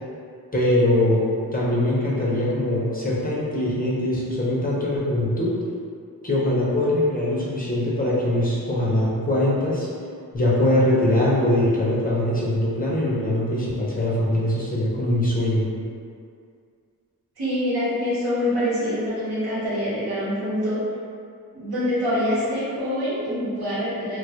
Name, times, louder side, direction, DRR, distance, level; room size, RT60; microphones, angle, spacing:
voice 1, 0.5-1.2 1.5-5.6 6.2-9.9 10.3-15.7, left 1 dB, 25° left, -6 dB, 0.4 m, -22 dB
voice 2, 17.4-20.8 21.5-24.2, left 1 dB, 85° right, -9 dB, 0.9 m, -25 dB
2.2 x 2.0 x 2.7 m, 2.2 s
wide cardioid pair, 100°, 37 cm